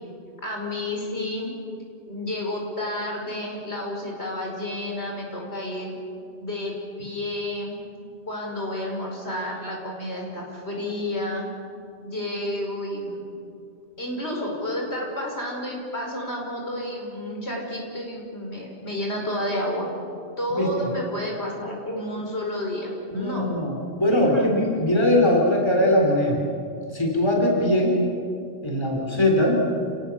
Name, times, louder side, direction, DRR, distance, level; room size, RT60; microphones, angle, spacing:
voice 1, 0.4-1.5 2.1-6.0 6.4-6.7 7.0-7.8 8.3-11.5 12.0-13.2 14.0-19.9 20.4-23.5 24.1-24.5, left 1 dB, 65° left, -1 dB, 5.4 m, -30 dB
voice 2, 23.1-26.4 26.9-28.0 28.6-29.6, left 1 dB, 20° left, -1 dB, 3.7 m, -21 dB
29.5 x 19.5 x 7.2 m, 2.5 s
omnidirectional pair, 1.2 m